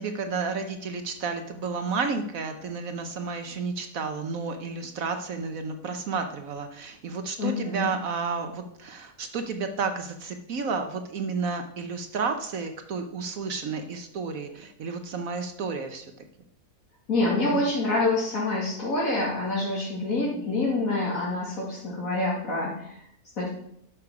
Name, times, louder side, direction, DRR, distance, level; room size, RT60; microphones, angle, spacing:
voice 1, 0.0-14.5 14.8-16.0 17.5-17.6, right 4 dB, 65° right, 6 dB, 1.2 m, -31 dB
voice 2, 7.4-7.9 17.1-23.1 23.4-23.5, left 2 dB, 65° left, -7 dB, 2.7 m, -27 dB
10.5 x 6.7 x 4.8 m, 0.73 s
omnidirectional pair, 1.6 m